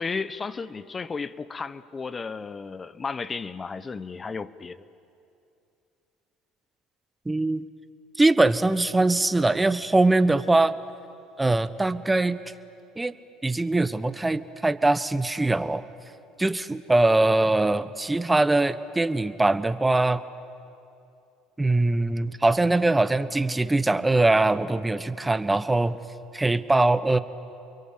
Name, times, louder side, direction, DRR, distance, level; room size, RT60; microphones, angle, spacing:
voice 1, 0.0-4.8, left 4 dB, 30° left, 1.0 m, -33 dB
voice 2, 7.3-7.6 8.2-10.7 11.4-12.4 13.0-13.1 13.4-15.8 16.4-20.2 21.6-26.0 26.3-27.2, right 2 dB, 15° right, 1.1 m, -22 dB
29.5 x 23.0 x 8.8 m
hypercardioid pair, 75°, 0 cm